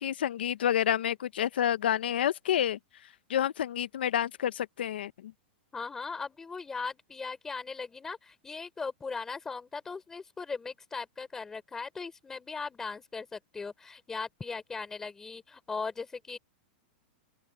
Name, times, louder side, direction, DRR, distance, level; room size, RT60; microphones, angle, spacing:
voice 1, 0.0-2.8 3.3-5.3, left 10 dB, 85° left, 0.9 m, -29 dB
voice 2, 5.7-16.4, left 4 dB, 10° left, 3.6 m, -38 dB
open air
supercardioid pair, 170°, 5 cm